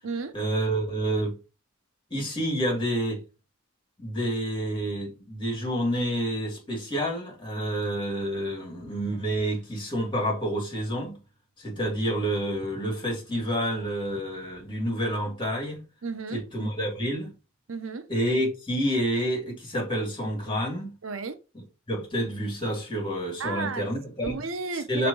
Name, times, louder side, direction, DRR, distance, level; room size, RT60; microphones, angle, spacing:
voice 1, 0.3-1.4 2.1-3.2 4.0-11.2 11.6-15.8 16.3-17.3 18.1-20.9 21.5-24.4 24.7-25.1, equal, 25° left, 2.5 m, -29 dB
voice 2, 16.0-16.4 17.7-18.1 21.0-21.4 23.4-23.9 24.2-25.1, right 4 dB, 70° right, 0.7 m, -33 dB
6.0 x 3.3 x 5.3 m
head